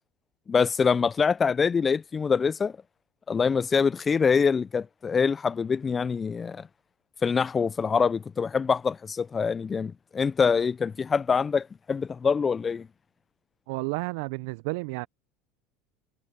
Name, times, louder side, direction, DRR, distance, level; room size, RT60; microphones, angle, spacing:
voice 1, 0.5-2.7 3.3-6.6 7.2-12.9, left 5 dB, 25° left, 0.4 m, -25 dB
voice 2, 13.7-15.1, right 27 dB, 70° right, 0.4 m, -31 dB
hypercardioid pair, 90°, 0 cm